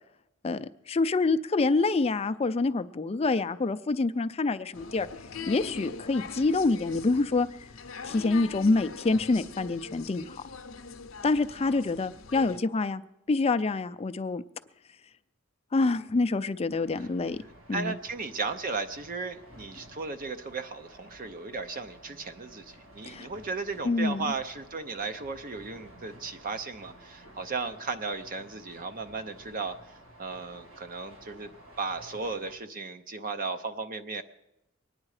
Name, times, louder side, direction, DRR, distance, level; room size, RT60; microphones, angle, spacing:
voice 1, 0.4-5.1 5.5-7.5 8.0-10.4 11.2-13.0 13.3-14.4 15.7-17.4 17.7-17.9 23.0-23.3 23.8-24.3, left 3 dB, 30° left, 12 dB, 0.4 m, -26 dB
sound 1, 4.7-12.6, left 5 dB, 65° left, 0.7 m, -42 dB
sound 2, 16.7-32.6, right 1 dB, 85° right, 3.1 m, -53 dB
voice 2, 17.7-31.5 31.8-34.2, right 4 dB, 40° right, 9 dB, 0.7 m, -35 dB
23.0 x 9.7 x 4.9 m, 0.91 s
head